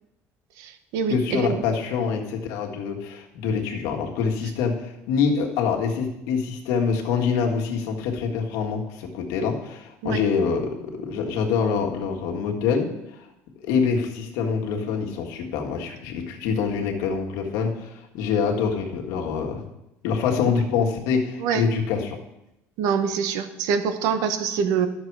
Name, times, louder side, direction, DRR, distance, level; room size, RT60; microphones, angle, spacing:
voice 1, 0.6-1.6 10.0-10.2 21.4-21.7 22.8-24.9, right 6 dB, 75° right, 10 dB, 1.0 m, -25 dB
voice 2, 1.1-13.3 13.6-19.6 20.0-22.2, left 6 dB, 90° left, 1 dB, 1.7 m, -25 dB
12.0 x 6.7 x 4.7 m, 0.88 s
cardioid pair, 160°, 6 cm